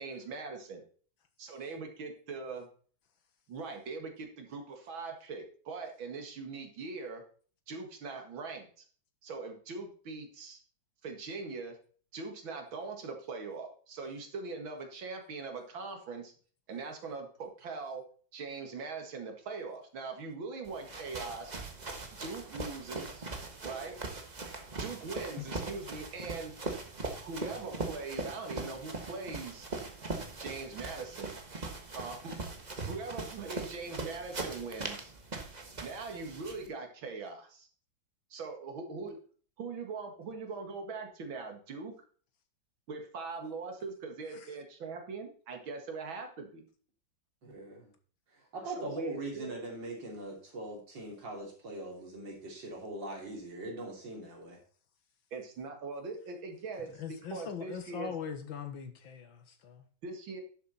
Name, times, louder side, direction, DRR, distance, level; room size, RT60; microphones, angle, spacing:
voice 1, 0.0-0.8 1.4-2.7 3.5-7.2 7.7-8.8 9.2-10.6 11.0-11.8 12.1-16.3 16.7-18.0 18.3-21.6 22.1-23.3 23.6-24.0 24.8-26.5 27.2-29.7 30.4-31.3 31.9-32.4 32.8-35.1 35.8-37.7 38.3-39.2 39.6-41.9 42.9-46.7 48.7-49.5 55.3-58.2 60.0-60.4, right 4 dB, 90° right, 4 dB, 2.6 m, -41 dB
sound 1, 20.6-36.7, right 3 dB, 25° right, 1.2 m, -41 dB
voice 2, 47.4-47.9 48.3-54.6, right 2 dB, 70° right, 0 dB, 3.7 m, -41 dB
voice 3, 57.0-59.8, left 7 dB, 80° left, 7 dB, 2.1 m, -41 dB
11.0 x 7.3 x 4.1 m, 0.43 s
omnidirectional pair, 2.1 m